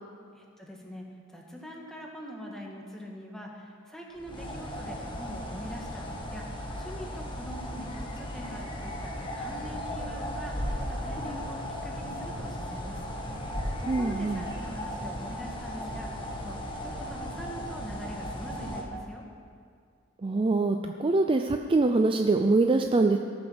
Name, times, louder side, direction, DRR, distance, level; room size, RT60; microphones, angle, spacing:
voice 1, 0.3-13.0 13.8-16.1 16.4-19.2, equal, 5° left, -2 dB, 1.7 m, -43 dB
sound 1, 4.2-18.8, equal, 25° left, 1.4 m, -36 dB
voice 2, 13.9-14.5 20.2-23.2, right 3 dB, 25° right, 5 dB, 0.4 m, -24 dB
17.0 x 7.0 x 6.4 m, 2.2 s
head